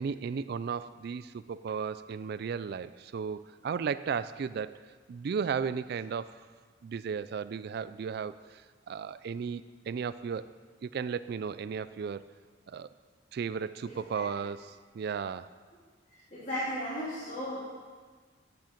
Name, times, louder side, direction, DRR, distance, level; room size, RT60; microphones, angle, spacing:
voice 1, 0.0-6.4 6.8-10.5 10.8-12.2 12.7-12.9 13.3-15.5, right 6 dB, 55° right, 15 dB, 0.3 m, -35 dB
voice 2, 16.3-17.6, equal, 40° left, -10 dB, 2.9 m, -35 dB
12.0 x 10.0 x 5.1 m, 1.5 s
head